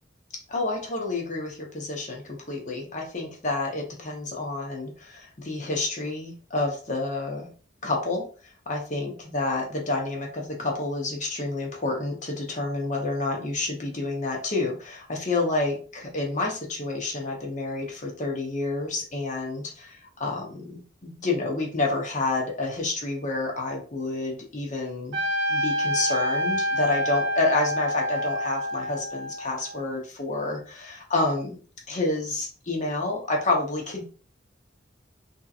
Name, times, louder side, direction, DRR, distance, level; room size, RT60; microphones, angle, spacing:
voice 1, 0.5-7.5 7.8-8.2 8.7-25.2 25.5-34.0, left 2 dB, 40° left, 0 dB, 0.9 m, -29 dB
Trumpet, 25.1-29.8, equal, 70° right, 0.6 m, -27 dB
3.5 x 2.8 x 2.4 m, 0.38 s
head